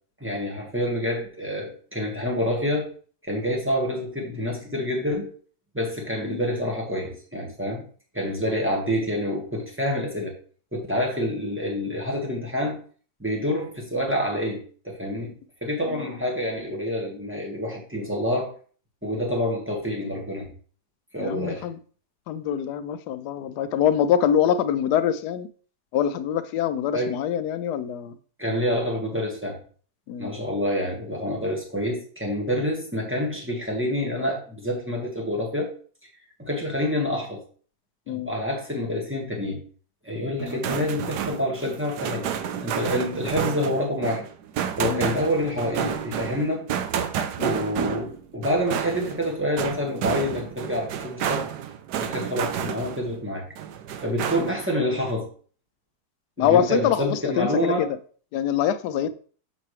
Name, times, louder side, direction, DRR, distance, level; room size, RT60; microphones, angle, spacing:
voice 1, 0.2-2.9 3.2-5.3 5.7-7.8 8.1-10.4 10.7-12.8 13.2-15.4 15.6-18.5 19.0-20.5 21.1-21.7 26.9-27.2 28.4-29.6 30.2-35.7 36.4-37.4 38.1-39.6 40.0-42.3 42.6-44.3 44.8-46.7 47.4-51.5 52.0-53.5 54.0-55.3 56.4-57.9, equal, 10° right, 1.5 m, -27 dB
voice 2, 21.2-21.8 22.3-25.5 25.9-28.2 30.1-30.3 38.1-38.3 40.4-40.6 44.9-45.1 47.4-47.5 56.4-58.0 58.3-59.1, left 9 dB, 80° left, 1.1 m, -24 dB
sound 1, 40.4-53.2 53.6-54.7, right 9 dB, 85° right, 1.2 m, -30 dB
6.5 x 6.0 x 3.2 m
omnidirectional pair, 1.7 m